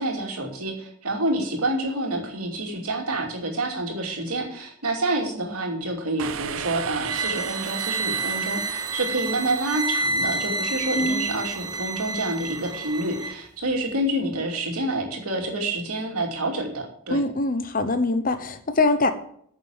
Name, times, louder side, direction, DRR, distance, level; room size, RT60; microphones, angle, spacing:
voice 1, 0.0-17.2, right 1 dB, 80° right, 2 dB, 2.6 m, -28 dB
sound 1, 6.2-10.0, right 8 dB, 65° right, 0.7 m, -35 dB
sound 2, 7.0-13.4, right 3 dB, 20° right, 0.9 m, -29 dB
voice 2, 10.9-11.4 17.1-19.1, left 2 dB, 40° left, 10 dB, 0.9 m, -23 dB
9.6 x 6.8 x 7.3 m, 0.65 s
head